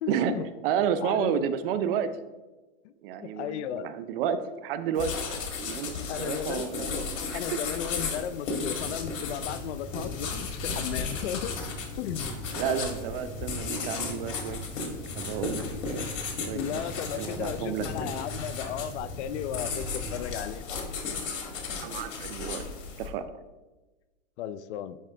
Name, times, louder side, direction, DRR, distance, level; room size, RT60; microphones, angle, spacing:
voice 1, 0.0-0.5 1.0-1.5 2.8-2.9 3.2-3.9 6.1-6.7 7.3-11.5 12.0-12.3 16.4-20.6 24.4-25.0, left 10 dB, 65° left, 14 dB, 0.5 m, -35 dB
voice 2, 0.6-2.1 3.0-5.1 5.6-7.0 7.3-7.6 12.5-16.1 16.5-16.6 17.0-17.9 21.8-22.6 23.0-23.3, right 8 dB, 50° right, 12 dB, 0.5 m, -31 dB
sound 1, 5.0-23.1, left 4 dB, 80° left, 1.6 m, -35 dB
sound 2, 8.6-20.3, equal, 30° left, 1.1 m, -41 dB
10.0 x 3.6 x 3.3 m, 1.2 s
hypercardioid pair, 135°, 37 cm